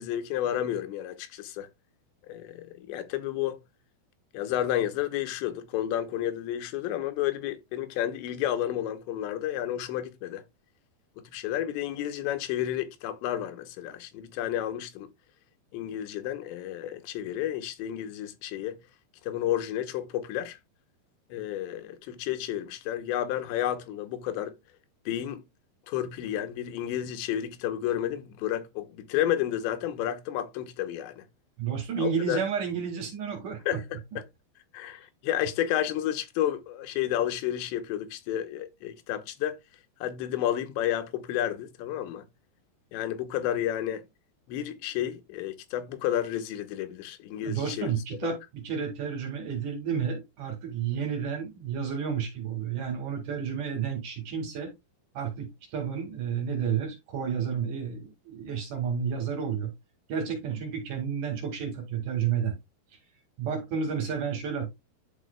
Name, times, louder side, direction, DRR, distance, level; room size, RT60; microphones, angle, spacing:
voice 1, 0.0-1.7 2.3-3.6 4.3-10.4 11.3-15.1 15.7-18.8 19.3-20.6 21.3-24.5 25.1-25.4 25.9-31.2 32.0-32.4 33.7-34.0 34.7-39.6 40.0-42.3 42.9-44.0 44.5-47.9 48.2-48.3, left 11 dB, 90° left, 3.2 m, -31 dB
voice 2, 31.6-33.8 47.4-54.7 55.1-59.7 60.1-62.6 63.4-64.7, right 7 dB, 55° right, 3.1 m, -31 dB
11.5 x 4.7 x 2.2 m
omnidirectional pair, 5.0 m